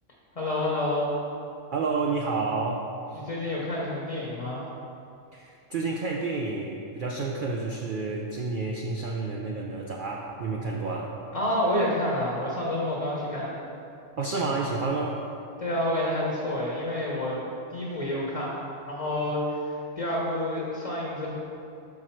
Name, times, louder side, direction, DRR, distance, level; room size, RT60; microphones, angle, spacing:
voice 1, 0.3-1.1 3.1-4.6 11.3-13.5 15.6-17.4 17.7-18.5 18.9-21.4, left 1 dB, 30° left, -4 dB, 0.8 m, -28 dB
voice 2, 1.7-3.3 5.3-11.2 14.2-15.2, right 3 dB, 60° right, -1 dB, 0.5 m, -30 dB
6.2 x 5.5 x 4.3 m, 2.6 s
omnidirectional pair, 1.4 m